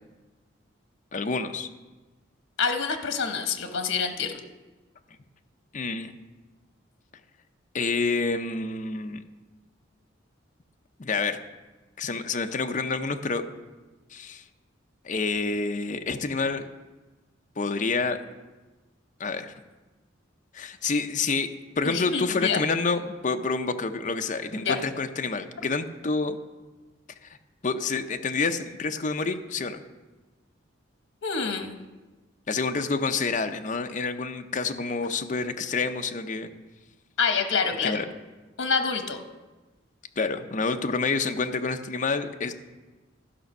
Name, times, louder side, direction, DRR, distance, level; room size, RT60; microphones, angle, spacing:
voice 1, 1.1-1.7 5.7-6.1 7.7-9.2 11.0-11.4 12.0-13.5 14.1-14.4 15.0-16.7 17.6-18.2 19.2-19.5 20.5-21.5 21.8-26.4 27.2-27.3 27.6-29.8 32.5-36.5 37.8-38.0 40.2-42.5, left 4 dB, 40° left, 6 dB, 0.6 m, -28 dB
voice 2, 2.6-4.4 21.8-22.6 24.6-24.8 31.2-31.8 37.2-38.0 38.6-39.2, left 5 dB, 85° left, 6 dB, 0.9 m, -27 dB
13.0 x 6.0 x 5.4 m, 1.2 s
head